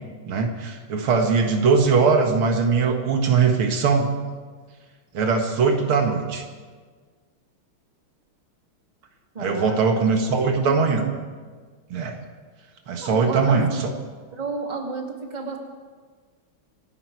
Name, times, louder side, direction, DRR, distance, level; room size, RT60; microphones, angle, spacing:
voice 1, 0.3-4.1 5.1-6.4 9.4-11.1 11.9-12.2 12.9-13.9, right 5 dB, 80° right, 3 dB, 2.4 m, -21 dB
voice 2, 9.3-9.8 10.2-11.1 13.0-13.9 14.3-15.6, right 3 dB, 20° right, 0 dB, 2.3 m, -32 dB
26.5 x 11.0 x 4.7 m, 1.5 s
omnidirectional pair, 2.3 m